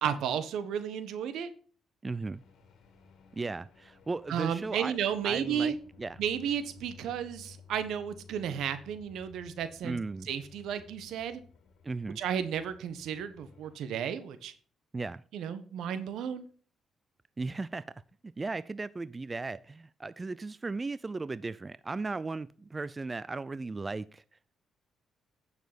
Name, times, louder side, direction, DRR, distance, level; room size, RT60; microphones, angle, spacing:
voice 1, 0.0-1.5 4.3-5.7 6.2-10.0 10.3-11.4 12.2-14.5 15.3-16.5, right 8 dB, 80° right, 1.3 m, -33 dB
voice 2, 2.0-2.4 3.3-5.0 5.2-6.2 9.8-10.3 11.8-12.2 14.9-15.2 17.4-17.8 18.4-24.2, right 3 dB, 25° right, 0.4 m, -36 dB
sound 1, 2.3-13.8, left 5 dB, 70° left, 2.5 m, -56 dB
9.3 x 6.6 x 5.2 m
cardioid pair, 90°, 0 cm